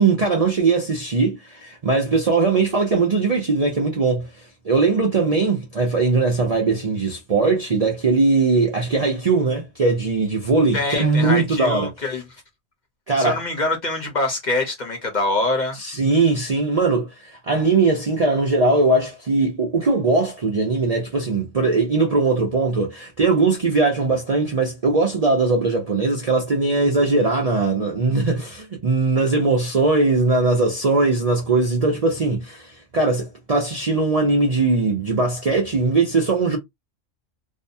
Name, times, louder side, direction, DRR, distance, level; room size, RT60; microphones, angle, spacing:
voice 1, 0.0-11.9 13.1-13.4 15.7-36.6, right 3 dB, 45° right, 0.5 m, -20 dB
voice 2, 10.7-12.2 13.2-15.8, left 2 dB, 40° left, 0.8 m, -24 dB
2.6 x 2.2 x 2.6 m
omnidirectional pair, 1.3 m